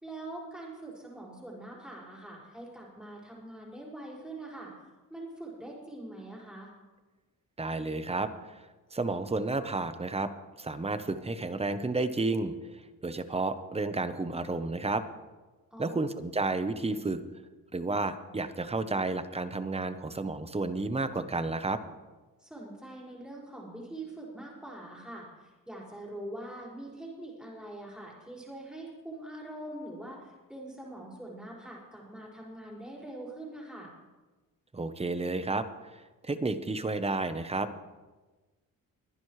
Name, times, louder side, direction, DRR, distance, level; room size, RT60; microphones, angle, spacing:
voice 1, 0.0-4.7 5.1-6.7 15.7-16.1 22.4-33.9, right 1 dB, ahead, -5 dB, 5.1 m, -43 dB
voice 2, 7.6-8.3 8.9-10.3 10.6-12.5 13.0-15.0 15.8-17.2 17.7-21.8 34.7-35.7 36.2-37.7, right 3 dB, 20° right, 11 dB, 0.9 m, -31 dB
23.0 x 10.5 x 3.2 m, 1.2 s
cardioid pair, 95°, 34 cm